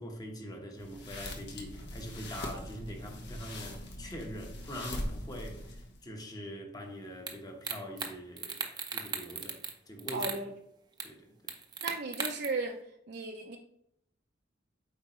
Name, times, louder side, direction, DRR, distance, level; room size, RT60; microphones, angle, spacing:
voice 1, 0.0-8.6 8.9-10.3 11.0-11.5, equal, 20° left, 1.1 m, -43 dB
sound 1, 0.8-6.0, left 1 dB, 65° left, 1.1 m, -41 dB
sound 2, 7.3-7.4 7.6-8.1 8.4-9.7 10.0-10.4 11.0-11.1 11.5-12.5, right 5 dB, 20° right, 0.8 m, -36 dB
voice 2, 10.1-10.5 11.8-12.8 13.1-13.6, right 3 dB, 60° right, 0.6 m, -35 dB
8.2 x 4.8 x 3.1 m
head